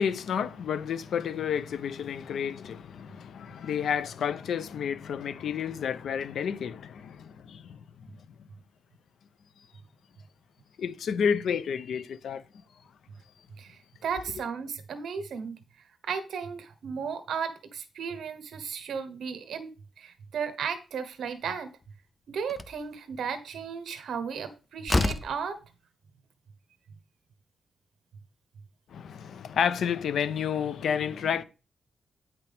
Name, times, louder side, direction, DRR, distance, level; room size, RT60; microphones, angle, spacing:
voice 1, 0.0-7.8 10.8-12.4 28.9-31.4, left 7 dB, 70° left, 0.6 m, -30 dB
voice 2, 13.6-15.6 16.0-19.7 20.0-21.7 22.3-25.6, right 6 dB, 75° right, 1.1 m, -35 dB
Slam, 21.8-21.9 22.5-22.8 24.4-24.5 24.9-25.4, left 2 dB, 20° left, 0.5 m, -27 dB
9.2 x 5.9 x 3.5 m
wide cardioid pair, 135°, 0 cm